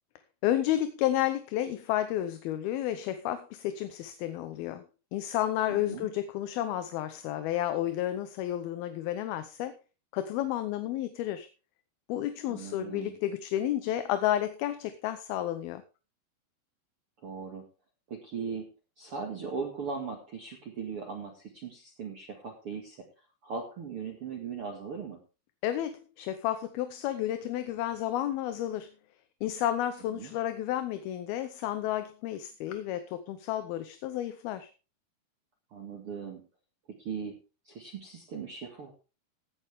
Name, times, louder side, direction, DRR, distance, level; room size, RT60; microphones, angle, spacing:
voice 1, 0.4-4.8 5.1-9.8 10.1-11.5 12.1-15.8 25.6-28.9 29.4-34.7, left 12 dB, 75° left, 10 dB, 2.6 m, -31 dB
voice 2, 5.7-6.1 12.5-13.2 17.2-17.6 18.1-18.7 19.0-23.0 23.4-25.2 30.1-30.3 35.7-36.4 36.9-37.4 37.6-38.9, right 5 dB, 45° right, 1 dB, 2.1 m, -39 dB
16.5 x 9.3 x 3.5 m, 0.32 s
omnidirectional pair, 4.6 m